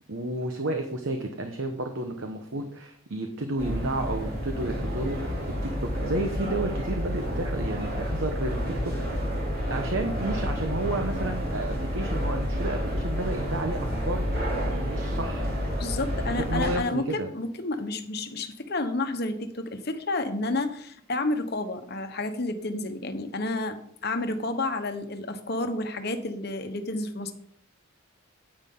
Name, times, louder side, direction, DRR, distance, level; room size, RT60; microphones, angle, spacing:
voice 1, 0.1-9.3 9.7-14.4 14.7-15.5 16.2-17.3, right 2 dB, 65° right, 5 dB, 1.0 m, -32 dB
sound 1, 3.6-16.8, equal, 45° right, 3.0 m, -30 dB
voice 2, 15.8-27.3, left 2 dB, 50° left, 7 dB, 1.0 m, -30 dB
9.7 x 8.9 x 3.7 m, 0.63 s
head